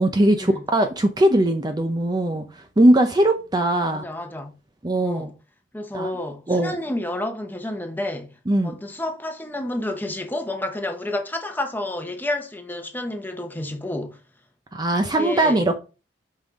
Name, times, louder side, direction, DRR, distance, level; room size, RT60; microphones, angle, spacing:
voice 1, 0.0-4.0 4.8-5.3 5.9-6.1 6.5-6.8 8.5-8.8 14.7-15.8, right 1 dB, 20° right, 0.6 m, -20 dB
voice 2, 3.9-4.6 5.0-5.3 5.7-14.2 15.0-15.6, left 1 dB, 10° left, 0.9 m, -30 dB
5.6 x 5.4 x 3.6 m
head